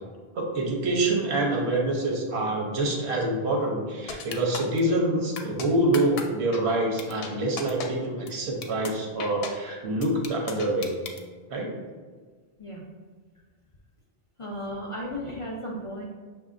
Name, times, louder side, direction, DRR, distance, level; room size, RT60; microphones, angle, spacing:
voice 1, 0.3-10.9 11.5-11.7, right 1 dB, 85° right, 0 dB, 1.1 m, -26 dB
sound 1, 4.1-4.8 5.4-5.7 5.9-6.2 6.5-6.6 7.0-7.3 7.6-7.9 8.3-8.4 8.6-8.9 9.2-9.5 10.0-11.2, left 5 dB, 70° left, 0.8 m, -34 dB
voice 2, 14.4-16.0, equal, 45° left, -3 dB, 0.4 m, -35 dB
6.1 x 2.8 x 2.5 m, 1.5 s
omnidirectional pair, 1.1 m